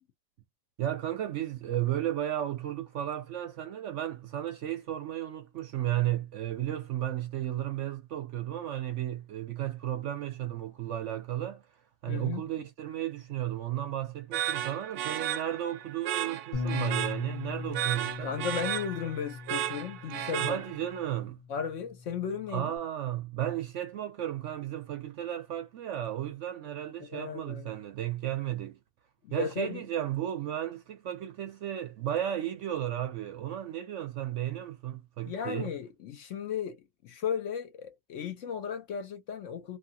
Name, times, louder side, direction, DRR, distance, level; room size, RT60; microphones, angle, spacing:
voice 1, 0.8-11.6 12.0-18.3 20.4-21.4 22.5-28.8 29.3-35.7, right 12 dB, 65° right, 0.8 m, -34 dB
voice 2, 12.1-12.4 18.2-20.6 21.5-22.7 27.0-27.7 29.2-29.8 35.3-36.8 37.0-39.8, left 7 dB, 65° left, 0.9 m, -35 dB
sound 1, 14.3-21.0, right 11 dB, 85° right, 1.1 m, -34 dB
Bass guitar, 16.5-22.8, left 3 dB, 30° left, 0.9 m, -39 dB
2.8 x 2.5 x 2.8 m
omnidirectional pair, 1.6 m